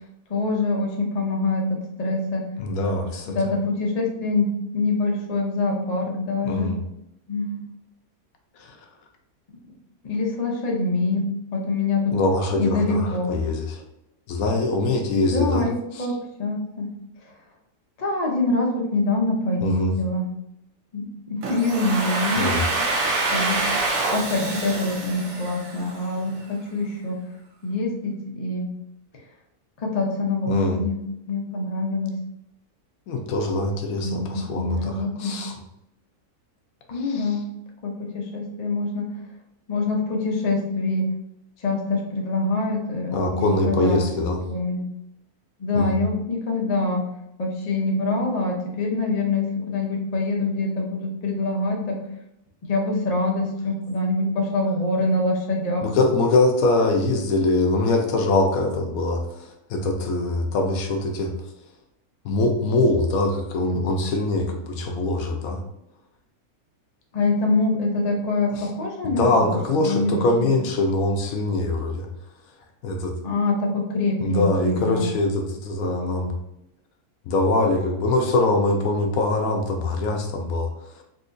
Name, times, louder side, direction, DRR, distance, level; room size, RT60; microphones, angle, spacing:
voice 1, 0.3-2.4 3.3-4.5 4.7-6.7 7.3-7.6 10.0-12.1 12.6-13.3 15.1-16.9 18.0-20.3 20.9-22.7 23.3-23.6 24.1-27.2 27.6-28.7 29.8-31.0 31.3-32.1 34.0-34.3 34.6-35.4 36.9-37.4 37.8-39.1 39.7-41.1 41.6-44.2 44.5-44.9 45.6-47.0 47.4-52.0 52.7-55.8 67.1-70.5 73.2-75.1, left 2 dB, 50° left, -1 dB, 0.4 m, -25 dB
voice 2, 2.6-3.4 6.4-6.8 8.6-8.8 12.1-13.8 14.3-15.6 15.9-16.1 19.6-20.0 22.4-22.6 30.5-30.8 33.1-35.6 36.9-37.3 43.1-44.4 45.7-46.0 55.8-61.3 62.2-65.6 68.5-68.7 69.0-72.1 72.8-73.1 74.2-76.3 77.3-81.0, left 2 dB, 70° left, 3 dB, 1.0 m, -23 dB
Domestic sounds home sounds, 21.4-26.2, right 2 dB, 70° right, 1.1 m, -26 dB
3.7 x 2.8 x 2.5 m, 0.85 s
omnidirectional pair, 1.6 m